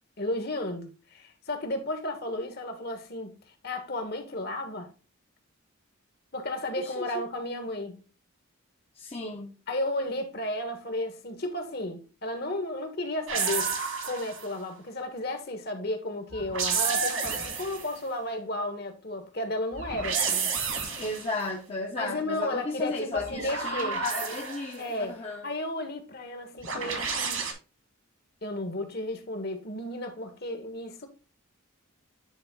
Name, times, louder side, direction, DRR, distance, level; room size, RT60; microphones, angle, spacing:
voice 1, 0.2-4.9 6.3-8.0 9.7-13.7 14.0-20.6 21.9-24.0 24.8-27.4 28.4-31.1, left 1 dB, 45° left, 1.5 m, -33 dB
voice 2, 6.8-7.2 8.9-9.5 21.0-25.5, left 2 dB, 30° left, 0.9 m, -34 dB
sound 1, 13.3-14.6 16.3-18.0 19.7-21.4 23.2-24.8 26.6-27.5, right 5 dB, 70° right, 2.2 m, -30 dB
9.9 x 3.9 x 3.8 m
head